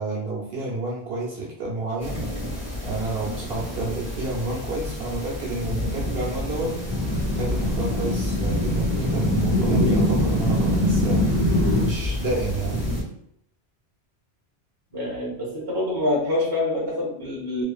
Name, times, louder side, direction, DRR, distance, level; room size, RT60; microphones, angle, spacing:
voice 1, 0.0-2.2 2.8-6.7 7.4-11.5 11.8-12.8, right 2 dB, 70° right, -5 dB, 0.9 m, -30 dB
sound 1, 2.0-13.0, left 1 dB, ahead, 1.3 m, -31 dB
sound 2, 6.9-11.9, left 1 dB, 25° left, 1.2 m, -22 dB
voice 2, 14.9-17.6, left 2 dB, 25° right, -5 dB, 1.0 m, -26 dB
2.7 x 2.4 x 2.3 m, 0.73 s
omnidirectional pair, 1.1 m